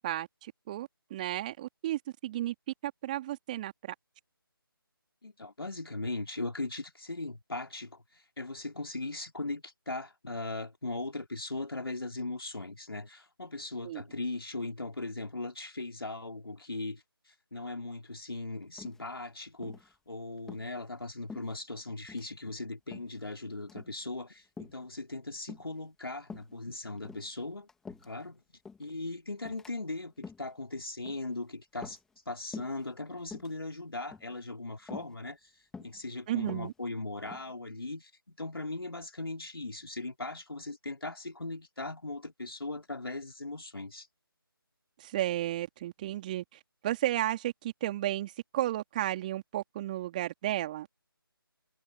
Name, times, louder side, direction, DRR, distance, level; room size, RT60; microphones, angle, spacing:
voice 1, 0.0-2.5 2.8-3.9 13.8-14.0 36.3-36.7 45.0-50.9, right 14 dB, 20° right, 3.1 m, -33 dB
voice 2, 5.2-8.0 8.4-17.0 17.5-27.7 28.0-28.4 28.8-32.0 32.3-35.4 35.8-44.1, left 2 dB, 75° left, 3.2 m, -39 dB
sound 1, 18.8-19.3 19.6-19.9 20.4-20.7 21.3-21.8 22.1-22.3 22.9-23.3 23.6-24.0 24.6-24.9 25.5-25.8 26.3-26.5 27.0-28.3 28.6-28.9 29.4-29.7 30.1-30.5 31.1-31.3 31.8-32.3 32.5-32.9 33.2-33.6 34.1-34.4 34.9-35.1 35.7-36.0 36.4-37.5, left 4 dB, 5° left, 2.6 m, -47 dB
figure-of-eight pair, 155°, 12 cm